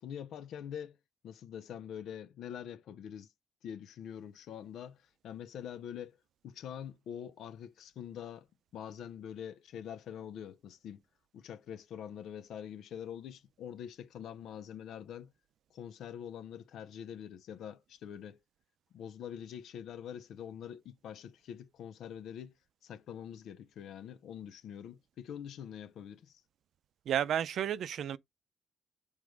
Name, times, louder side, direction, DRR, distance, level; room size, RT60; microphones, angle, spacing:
voice 1, 0.0-1.0 1.2-3.3 3.6-6.2 6.4-8.5 8.7-11.0 11.3-15.3 15.7-18.4 18.9-22.5 22.8-26.4, left 9 dB, 75° left, 0.7 m, -45 dB
voice 2, 27.1-28.2, right 10 dB, 70° right, 0.5 m, -32 dB
6.1 x 3.6 x 4.7 m
cardioid pair, 90°, 0 cm